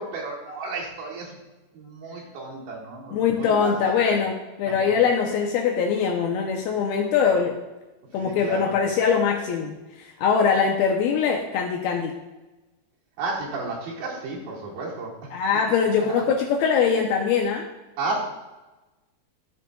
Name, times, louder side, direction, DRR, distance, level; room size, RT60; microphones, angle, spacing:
voice 1, 0.0-1.3 1.7-3.7 4.0-4.2 4.7-4.9 8.2-8.7 13.2-15.4 18.0-18.2, right 3 dB, 75° right, -4 dB, 4.0 m, -32 dB
voice 2, 3.1-7.6 8.1-12.1 15.3-17.7, left 6 dB, 80° left, 1 dB, 2.3 m, -22 dB
13.5 x 6.4 x 2.3 m, 1.1 s
omnidirectional pair, 4.9 m